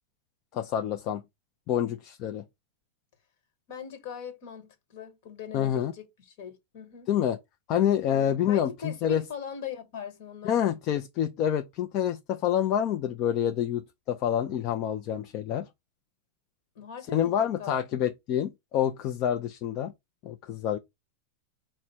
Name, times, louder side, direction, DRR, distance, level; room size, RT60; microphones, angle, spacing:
voice 1, 0.5-1.2 1.7-2.4 5.5-5.9 7.1-7.4 7.7-9.2 10.4-15.7 17.1-19.9 20.2-20.8, left 10 dB, 35° left, 0.4 m, -27 dB
voice 2, 3.7-7.1 8.1-11.0 16.7-17.8, left 6 dB, 50° left, 1.3 m, -41 dB
4.8 x 2.1 x 4.2 m
supercardioid pair, 160°, 0 cm